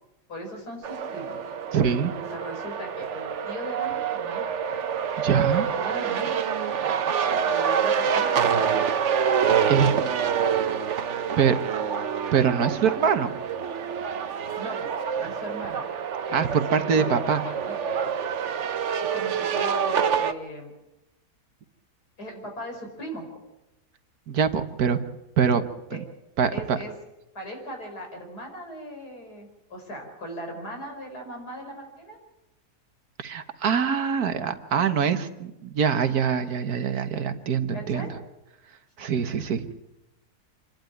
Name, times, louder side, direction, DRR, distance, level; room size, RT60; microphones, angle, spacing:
voice 1, 0.3-1.4 2.3-4.5 5.5-6.3 7.2-8.4 14.5-15.9 16.3-16.4 16.8-18.2 19.1-20.7 22.2-23.4 25.9-26.0 26.5-26.9 27.3-32.2 37.7-38.1, equal, 70° left, 2 dB, 5.5 m, -38 dB
sound 1, 0.8-20.3, right 7 dB, 50° right, 1.1 m, -27 dB
voice 2, 1.7-2.1 5.2-5.7 9.7-9.9 11.4-11.6 12.3-13.4 16.3-17.4 24.3-25.0 25.4-25.6 25.9-26.0 26.4-26.8 33.2-38.1 39.0-39.7, right 7 dB, 70° right, 9 dB, 1.6 m, -24 dB
27.5 x 12.0 x 9.2 m, 0.95 s
omnidirectional pair, 1.7 m